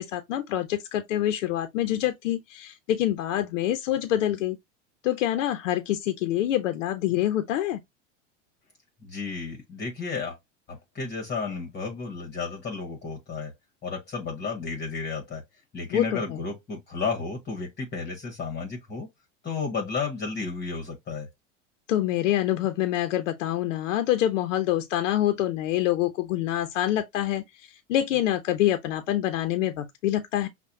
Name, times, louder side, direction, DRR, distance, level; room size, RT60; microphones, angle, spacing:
voice 1, 0.0-4.6 5.0-7.8 15.9-16.4 21.9-30.5, left 12 dB, 75° left, 0.7 m, -26 dB
voice 2, 9.0-10.4 10.7-13.5 13.8-15.4 15.7-19.1 19.4-21.3, left 4 dB, 25° left, 1.3 m, -32 dB
5.5 x 2.3 x 2.6 m
hypercardioid pair, 100°, 38 cm